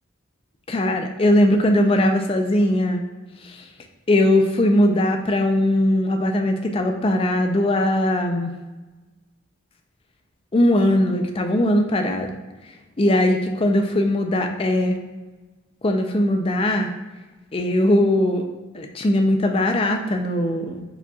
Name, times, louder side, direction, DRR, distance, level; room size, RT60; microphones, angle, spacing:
voice 1, 0.7-3.0 3.4-3.6 4.1-8.5 10.5-12.3 13.0-15.0 15.8-16.9 17.5-18.5 18.7-20.8, left 1 dB, 25° left, 4 dB, 0.4 m, -20 dB
4.9 x 4.0 x 2.3 m, 1.2 s
head